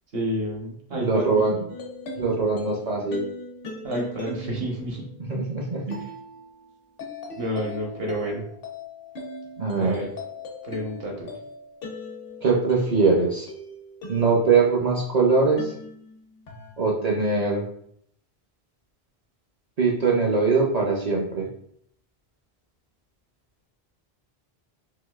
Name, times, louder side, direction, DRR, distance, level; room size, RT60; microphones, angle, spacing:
voice 1, 0.1-1.6 3.8-5.0 7.3-8.5 9.8-10.1 10.6-11.3, right 1 dB, 65° right, 0 dB, 1.1 m, -30 dB
voice 2, 0.9-1.6 2.2-3.3 5.3-6.0 9.6-10.0 12.4-13.5 14.1-15.7 16.8-17.7 19.8-21.5, right 4 dB, 50° right, -2 dB, 0.6 m, -22 dB
sound 1, 1.7-15.1 15.6-16.7, left 2 dB, 65° left, 0.9 m, -40 dB
3.9 x 2.6 x 2.3 m, 0.68 s
omnidirectional pair, 1.1 m